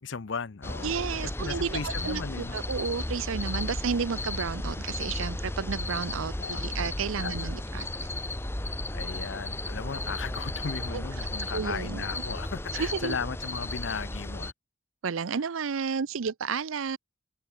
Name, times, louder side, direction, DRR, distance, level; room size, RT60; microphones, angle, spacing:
voice 1, 0.0-1.0 1.4-2.5 6.4-6.6 7.2-7.5 8.9-14.5, left 5 dB, 60° left, 0.7 m, -36 dB
sound 1, 0.6-14.5, left 1 dB, 10° left, 0.8 m, -34 dB
voice 2, 0.8-8.1 10.9-11.0 11.5-12.0 12.8-13.2 15.0-17.0, right 6 dB, 80° right, 0.6 m, -32 dB
open air
head